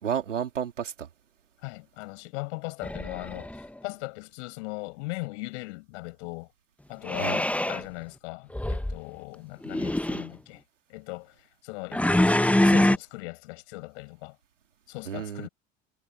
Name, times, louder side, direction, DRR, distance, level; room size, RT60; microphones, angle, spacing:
voice 1, 0.0-1.1 7.1-7.4 15.1-15.5, right 8 dB, 85° right, 3.4 m, -31 dB
voice 2, 1.6-3.5 3.8-6.5 6.9-10.6 10.9-12.3 12.6-14.4 14.9-15.5, left 25 dB, 70° left, 7.9 m, -38 dB
sound 1, 2.8-3.7 7.1-7.8 8.5-9.0 9.6-10.3 11.9-13.0, left 1 dB, 5° left, 1.1 m, -24 dB
hypercardioid pair, 70°, 36 cm